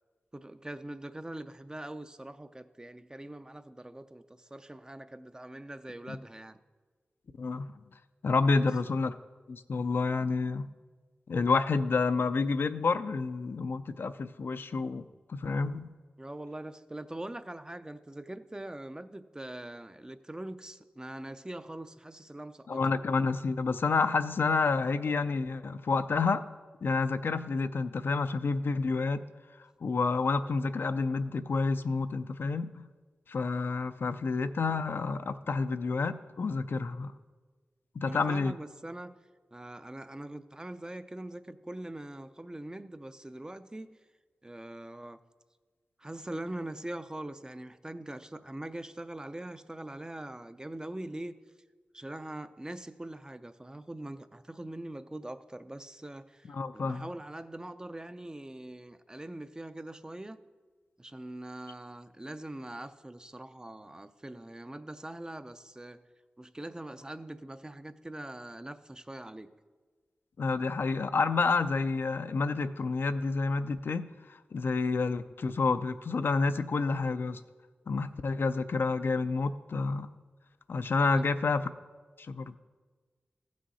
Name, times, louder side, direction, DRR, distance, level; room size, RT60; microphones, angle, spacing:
voice 1, 0.3-6.6 8.4-8.7 16.2-22.8 38.0-39.2 39.5-44.0 44.4-45.2 46.0-51.3 51.9-60.4 61.0-66.0 66.4-69.5 81.0-81.3, right 1 dB, 20° right, 11 dB, 0.5 m, -42 dB
voice 2, 7.4-7.7 8.2-9.1 9.5-10.7 11.3-15.0 15.3-15.9 22.7-26.4 26.8-29.2 29.8-32.8 33.3-37.1 38.0-38.6 56.5-57.1 70.4-77.4 77.9-80.1 80.7-81.6 82.2-82.6, left 4 dB, 70° left, 11 dB, 0.4 m, -29 dB
15.0 x 6.3 x 4.1 m, 1.4 s
cardioid pair, 55°, 4 cm